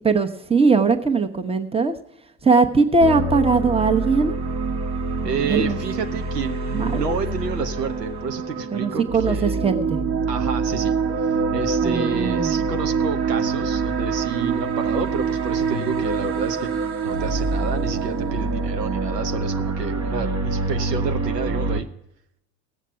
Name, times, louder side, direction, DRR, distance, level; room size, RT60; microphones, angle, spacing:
voice 1, 0.0-1.9 2.4-4.4 5.4-5.8 6.7-7.2 8.7-10.0 11.8-12.7, right 4 dB, 10° right, 8 dB, 1.0 m, -20 dB
sound 1, 3.0-21.8, right 4 dB, 35° right, 1.3 m, -25 dB
voice 2, 5.2-9.6 10.3-10.9 11.5-21.9, right 5 dB, 85° right, 8 dB, 1.0 m, -30 dB
17.5 x 7.3 x 5.7 m, 0.81 s
figure-of-eight pair, 70°, 48 cm